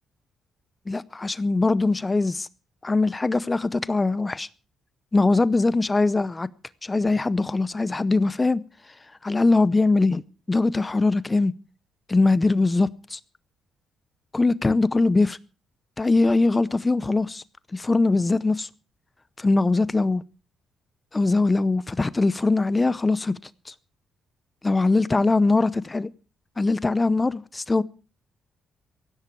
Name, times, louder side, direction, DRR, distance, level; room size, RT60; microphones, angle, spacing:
voice 1, 0.9-2.5 2.8-4.5 5.1-6.5 6.8-8.6 9.2-10.2 10.5-11.5 12.1-13.2 14.3-15.4 16.0-17.4 17.7-18.7 19.4-20.2 21.1-23.3 23.7-23.8 24.6-26.1 26.6-27.8, left 3 dB, 20° left, 0.7 m, -21 dB
17.0 x 15.5 x 4.6 m
cardioid pair, 90°, 0 cm